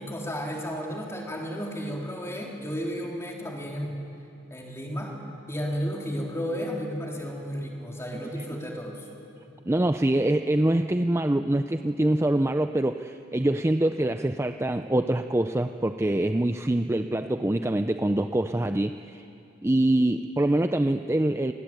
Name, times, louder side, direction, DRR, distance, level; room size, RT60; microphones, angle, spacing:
voice 1, 0.0-4.0 4.5-5.1 5.5-9.0, equal, 15° left, -1 dB, 3.9 m, -33 dB
voice 2, 9.7-19.3 19.6-21.5, right 1 dB, 15° right, 8 dB, 0.5 m, -24 dB
28.0 x 20.0 x 9.1 m, 2.7 s
head